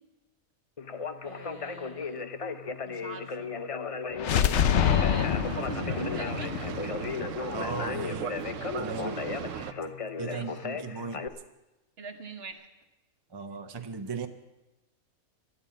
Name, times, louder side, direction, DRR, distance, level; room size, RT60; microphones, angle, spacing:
Conversation, 0.8-11.3, left 5 dB, 40° left, 0.5 m, -36 dB
voice 1, 1.2-2.3 2.8-3.5 4.8-6.6 10.2-10.7 12.0-12.7 13.8-13.9, right 3 dB, 50° right, 5 dB, 1.5 m, -41 dB
sound 1, 4.2-8.0, left 9 dB, 65° left, 0.9 m, -27 dB
Boat Water vehicle, 4.6-9.7, right 9 dB, 70° right, 1.0 m, -38 dB
voice 2, 7.5-8.3 8.8-9.2 10.2-11.2 13.3-14.3, right 4 dB, 30° right, 7 dB, 0.5 m, -36 dB
13.0 x 11.5 x 7.3 m, 1.0 s
omnidirectional pair, 1.4 m